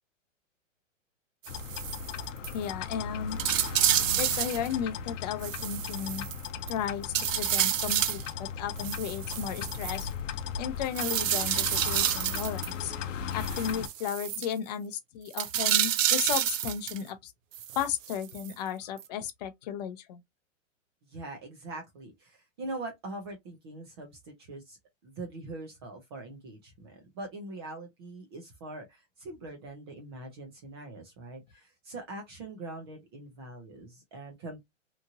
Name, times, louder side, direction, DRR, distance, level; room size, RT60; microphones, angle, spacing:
sound 1, 1.4-2.1 2.4-2.6 2.9-3.0 3.4-4.7 5.4-6.7 7.1-8.3 8.8-10.0 11.0-12.7 13.4-14.5 15.3-17.0 17.5-18.5 19.0-19.1, right 11 dB, 90° right, 0.5 m, -29 dB
sound 2, 1.5-13.9, left 7 dB, 75° left, 0.6 m, -37 dB
voice 1, 2.5-3.4 4.2-6.3 6.7-10.1 10.6-12.9 13.3-17.3 17.8-20.2, left 9 dB, 35° left, 0.5 m, -34 dB
voice 2, 21.1-24.8 25.0-34.6, right 2 dB, 20° right, 0.4 m, -42 dB
2.9 x 2.5 x 2.6 m
hypercardioid pair, 150°, 38 cm